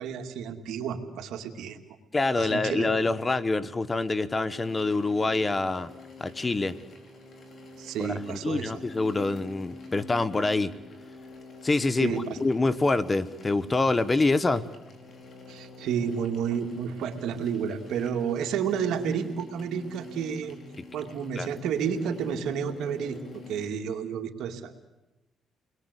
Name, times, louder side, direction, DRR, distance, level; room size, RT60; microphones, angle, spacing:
voice 1, 0.0-1.8 2.4-2.9 7.8-8.7 12.0-12.4 15.5-20.6 20.9-24.7, right 7 dB, 80° right, 5 dB, 2.4 m, -31 dB
voice 2, 2.1-5.9 6.2-6.7 8.0-10.7 11.6-14.6 21.4-21.5, left 3 dB, 25° left, 17 dB, 1.2 m, -26 dB
sound 1, 4.5-23.7, left 3 dB, 50° left, 5.2 m, -47 dB
30.0 x 21.0 x 8.3 m, 0.98 s
cardioid pair, 90°, 0 cm